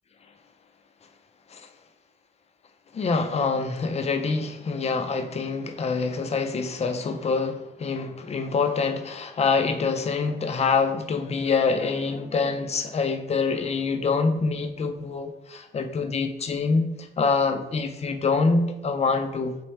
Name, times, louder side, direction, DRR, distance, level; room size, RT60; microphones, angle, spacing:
voice 1, 2.9-19.6, left 4 dB, 35° left, 0.4 m, -25 dB
4.4 x 3.5 x 3.2 m
wide cardioid pair, 170°, 20 cm